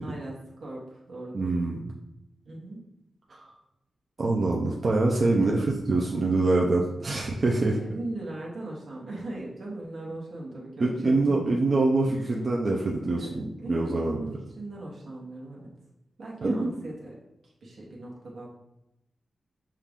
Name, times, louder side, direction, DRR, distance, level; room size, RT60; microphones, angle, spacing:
voice 1, 0.0-1.5 2.4-2.8 5.4-5.6 7.6-11.6 12.1-12.4 13.1-15.7 16.2-17.2 17.4-18.5, right 2 dB, 70° right, -3 dB, 1.1 m, -39 dB
voice 2, 1.3-1.9 3.3-3.4 4.2-7.8 10.8-14.1 16.4-16.7, right 2 dB, 45° right, -2 dB, 0.5 m, -25 dB
5.7 x 2.4 x 3.5 m, 0.90 s
wide cardioid pair, 105°, 0 cm